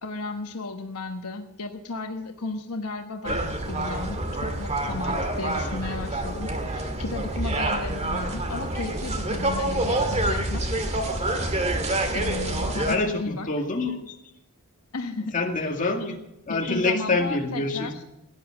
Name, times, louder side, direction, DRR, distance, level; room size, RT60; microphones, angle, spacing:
voice 1, 0.0-10.7 12.1-13.5 14.9-15.7 16.5-18.0, left 3 dB, 75° left, 5 dB, 1.2 m, -34 dB
sound 1, 3.2-13.0, right 1 dB, 30° right, 1.8 m, -27 dB
voice 2, 12.9-14.1 15.3-16.2 16.5-17.9, left 3 dB, 35° left, 2 dB, 2.3 m, -26 dB
17.0 x 10.0 x 7.8 m, 0.87 s
head